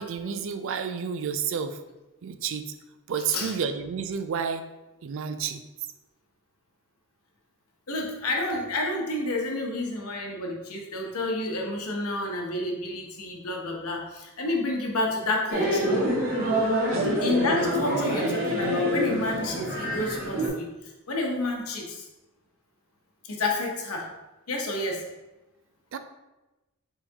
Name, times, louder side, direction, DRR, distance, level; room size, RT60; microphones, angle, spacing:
voice 1, 0.0-1.8 2.2-2.7 3.1-4.6 5.0-5.6 16.9-17.2 25.9-26.0, right 6 dB, 60° right, 9 dB, 0.4 m, -30 dB
voice 2, 7.9-15.9 17.2-20.7 21.1-22.1 23.3-24.1 24.5-25.0, left 2 dB, 85° left, 0 dB, 0.9 m, -29 dB
sound 1, 15.5-20.5, equal, 45° right, 1.1 m, -26 dB
4.3 x 3.9 x 2.8 m, 1.0 s
head